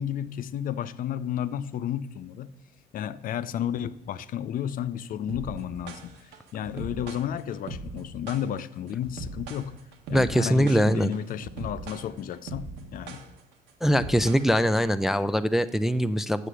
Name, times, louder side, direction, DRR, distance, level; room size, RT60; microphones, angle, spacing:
voice 1, 0.0-2.5 2.9-9.8 10.1-13.3, left 10 dB, 55° left, 0.5 m, -32 dB
sound 1, 5.3-14.9, right 3 dB, 85° right, 1.3 m, -40 dB
voice 2, 10.1-11.1 13.8-16.5, equal, ahead, 0.3 m, -22 dB
8.3 x 6.8 x 6.2 m
cardioid pair, 110°, 17 cm